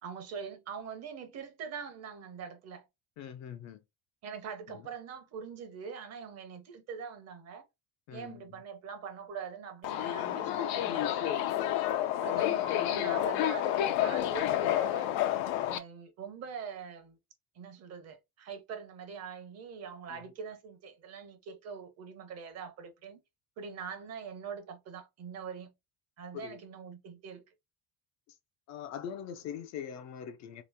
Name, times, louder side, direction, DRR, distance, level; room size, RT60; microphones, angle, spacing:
voice 1, 0.0-2.9 4.2-7.7 8.1-11.5 12.2-15.2 15.7-17.2 17.5-23.2 23.6-25.7 26.2-27.5, right 6 dB, 40° right, 0.8 m, -43 dB
voice 2, 3.2-3.8 4.7-4.8 8.1-8.4 20.1-20.2 26.3-26.6 28.7-30.6, left 8 dB, 50° left, 0.4 m, -42 dB
Subway metro underground, 9.8-15.8, left 12 dB, 90° left, 0.6 m, -30 dB
3.0 x 2.8 x 3.4 m
cardioid pair, 160°, 38 cm